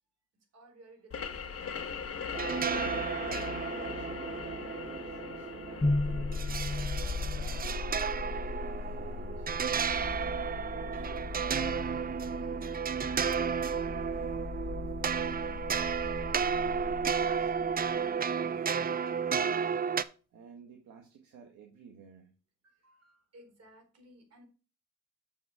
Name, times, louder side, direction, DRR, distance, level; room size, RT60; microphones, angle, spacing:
voice 1, 0.5-1.8 16.1-16.2 22.6-24.4, right 1 dB, 55° right, 3 dB, 4.0 m, -57 dB
sound 1, 1.1-10.5, left 6 dB, 50° left, 1.6 m, -41 dB
sound 2, 2.3-20.0, right 6 dB, 30° right, 0.5 m, -33 dB
voice 2, 2.6-9.5 9.9-12.7 13.3-14.5 15.1-15.7 16.4-19.7 20.3-22.3, right 6 dB, 75° right, 2 dB, 1.6 m, -53 dB
sound 3, 5.8-17.9, left 3 dB, 15° left, 0.6 m, -37 dB
7.1 x 6.6 x 3.6 m, 0.35 s
cardioid pair, 90°, 30 cm